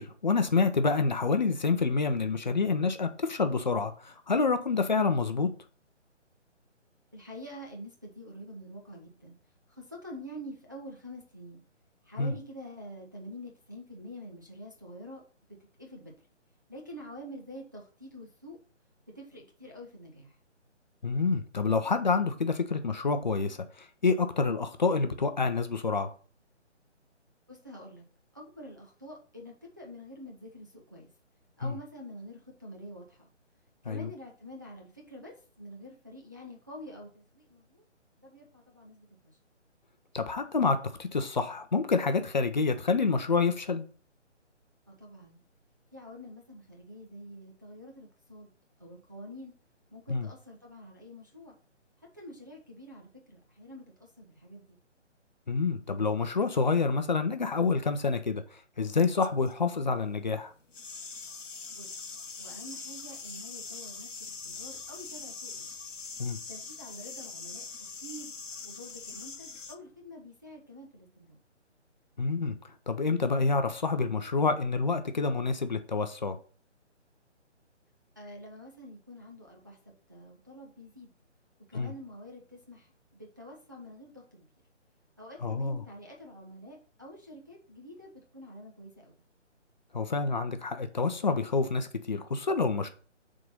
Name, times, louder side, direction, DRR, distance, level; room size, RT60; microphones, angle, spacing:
voice 1, 0.0-5.5 12.2-12.3 21.0-26.1 31.6-31.8 33.9-34.1 40.1-43.8 50.1-50.3 55.5-58.4 58.8-60.5 66.2-66.4 72.2-72.6 72.9-76.4 81.7-81.9 85.4-85.8 89.9-92.9, left 4 dB, 40° left, 0.6 m, -28 dB
voice 2, 7.1-9.3 9.7-11.6 12.0-15.2 15.8-16.1 16.7-18.6 19.1-20.3 27.5-28.0 28.3-31.1 31.6-33.3 33.8-37.8 38.2-39.4 44.9-45.4 45.9-48.5 48.8-49.5 49.9-51.6 52.1-54.8 61.7-61.9 62.4-65.7 66.5-67.6 68.0-68.3 68.6-71.4 78.2-79.8 80.1-81.1 81.7-84.5 85.2-89.2, equal, 15° right, 0.5 m, -47 dB
sound 1, 58.8-59.5 60.7-69.8, left 5 dB, 80° left, 0.8 m, -42 dB
6.5 x 3.8 x 5.5 m
figure-of-eight pair, 145°, 36 cm